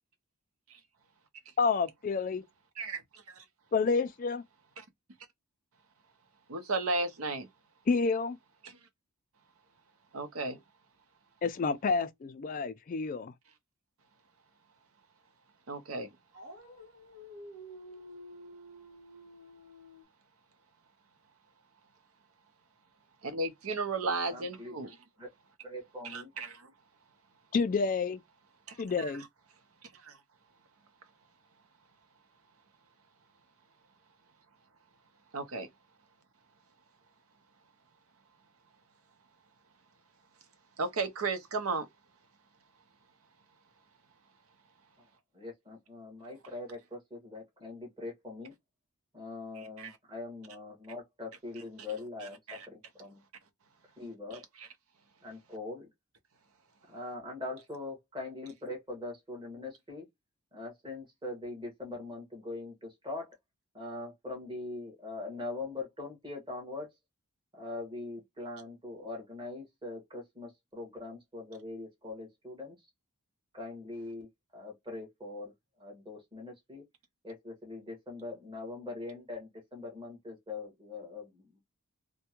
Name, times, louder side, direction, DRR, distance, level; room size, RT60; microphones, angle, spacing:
voice 1, 1.6-2.4 3.7-4.4 7.9-8.4 11.4-13.3 27.5-28.2 28.8-29.3, left 4 dB, 40° left, 0.3 m, -29 dB
voice 2, 6.5-7.5 10.1-10.6 15.7-16.1 23.2-24.9 26.1-26.7 28.7-28.8 30.0-30.1 35.3-35.7 40.8-41.9 49.8-49.9 52.5-52.7, right 3 dB, 85° right, 0.7 m, -34 dB
Dog, 16.3-20.0, equal, 55° right, 1.3 m, -50 dB
voice 3, 24.3-24.7 25.2-25.3 25.6-26.3 45.3-48.5 49.1-52.4 52.7-53.2 54.0-54.4 55.2-55.9 56.9-60.0 60.5-63.3 63.7-66.9 67.5-72.7 73.5-74.3 74.5-75.5 75.8-76.8 77.2-81.6, left 2 dB, 20° right, 1.4 m, -42 dB
3.3 x 2.2 x 2.9 m
head